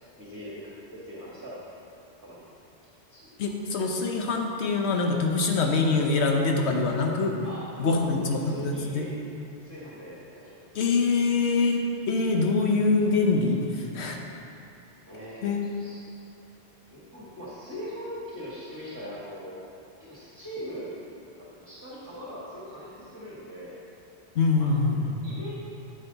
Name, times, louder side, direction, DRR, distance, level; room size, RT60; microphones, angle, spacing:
voice 1, 0.2-1.6 2.2-2.4 3.1-3.3 7.4-9.1 9.4-10.8 15.1-16.3 16.9-19.6 20.0-20.9 21.4-23.8 24.6-24.7 25.2-25.5, equal, 20° right, -8 dB, 1.7 m, -41 dB
voice 2, 3.4-7.4 7.8-9.0 10.7-14.2 15.4-15.6 24.3-25.2, left 3 dB, 80° left, 2 dB, 1.2 m, -24 dB
9.3 x 7.9 x 4.0 m, 2.6 s
omnidirectional pair, 1.1 m